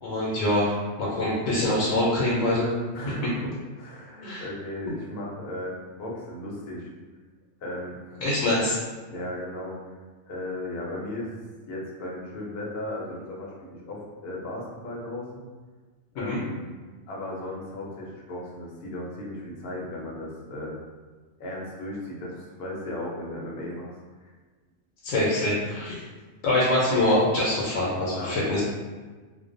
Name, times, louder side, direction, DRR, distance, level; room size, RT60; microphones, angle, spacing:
voice 1, 0.0-0.7 1.0-2.7 4.2-4.4 8.2-8.8 16.2-16.4 25.0-26.0 26.4-28.6, left 1 dB, 80° left, -6 dB, 1.0 m, -24 dB
voice 2, 2.9-6.9 7.6-8.2 9.1-9.8 10.2-11.4 11.7-15.5 16.1-16.6 17.1-20.8 21.4-24.0 24.2-24.3 28.1-28.4, left 1 dB, 60° left, -3 dB, 0.7 m, -36 dB
2.4 x 2.1 x 2.5 m, 1.4 s
omnidirectional pair, 1.3 m